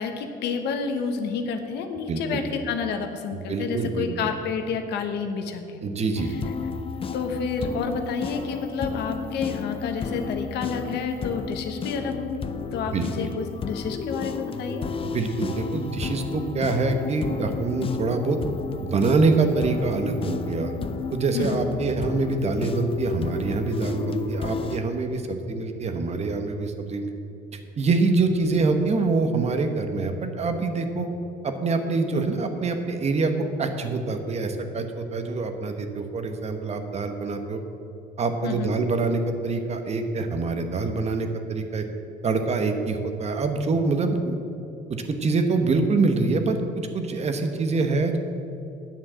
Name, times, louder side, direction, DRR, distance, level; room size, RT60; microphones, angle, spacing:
voice 1, 0.0-5.8 7.1-14.8 21.3-21.7 38.4-38.7, left 5 dB, 80° left, 6 dB, 1.2 m, -29 dB
voice 2, 2.1-2.4 3.3-4.1 5.8-6.3 12.9-13.1 15.0-18.4 18.8-20.7 21.1-27.1 27.8-31.1 31.4-33.3 33.6-37.6 38.2-41.8 42.2-44.4 44.9-48.2, right 3 dB, 40° right, 7 dB, 1.1 m, -25 dB
sound 1, 6.2-24.8, left 5 dB, 35° left, 0.5 m, -33 dB
9.0 x 7.3 x 7.4 m, 2.8 s
cardioid pair, 110°, 17 cm